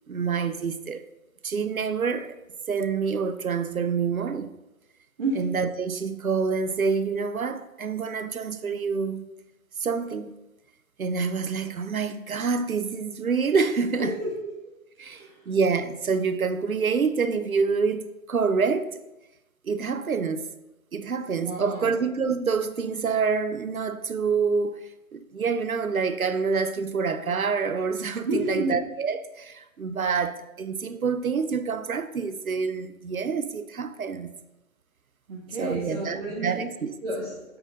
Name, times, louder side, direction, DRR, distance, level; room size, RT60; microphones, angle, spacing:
voice 1, 0.1-1.0 1.4-2.4 2.7-4.5 5.4-9.3 9.8-10.3 11.0-14.1 15.0-19.0 19.6-20.5 20.9-24.8 25.1-34.3 35.6-36.2 36.4-36.9, right 5 dB, 80° right, 0.7 m, -27 dB
voice 2, 14.0-14.5 15.0-15.4 21.3-21.9 28.2-28.8 35.3-36.6 37.0-37.6, right 2 dB, 45° right, 1.4 m, -30 dB
7.8 x 4.2 x 5.2 m
figure-of-eight pair, 135°, 42 cm